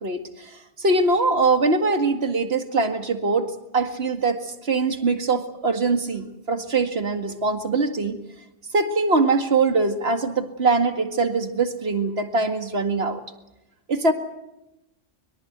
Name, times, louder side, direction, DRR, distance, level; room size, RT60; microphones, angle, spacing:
voice 1, 0.8-8.2 8.7-13.2 13.9-14.1, right 3 dB, 55° right, 7 dB, 2.3 m, -22 dB
24.0 x 22.5 x 8.1 m, 0.90 s
omnidirectional pair, 1.3 m